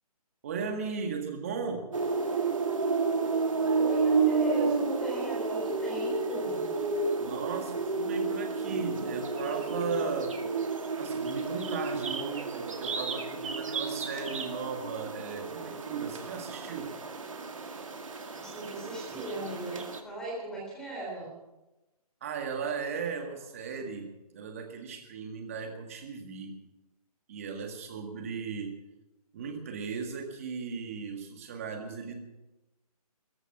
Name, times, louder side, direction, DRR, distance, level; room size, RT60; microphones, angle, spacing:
voice 1, 0.4-1.8 7.2-10.4 11.0-16.9 22.2-24.1 24.3-26.5 27.3-28.7 29.3-32.1, right 5 dB, 20° right, 4 dB, 1.8 m, -36 dB
sound 1, 1.9-20.0, right 4 dB, 55° right, 2.1 m, -31 dB
voice 2, 3.7-6.8 18.4-21.3, right 2 dB, 5° left, -2 dB, 3.6 m, -39 dB
16.0 x 14.5 x 5.9 m, 1.0 s
hypercardioid pair, 170°, 20 cm